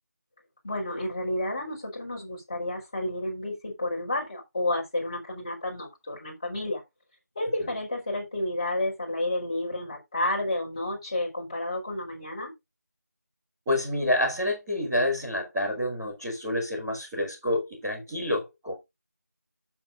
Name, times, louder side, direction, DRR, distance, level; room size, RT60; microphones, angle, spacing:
voice 1, 0.6-6.8 7.4-12.5, left 1 dB, 20° left, 3.7 m, -31 dB
voice 2, 13.6-18.7, left 1 dB, 5° right, 1.7 m, -28 dB
13.5 x 7.1 x 2.5 m
figure-of-eight pair, 175°, 9 cm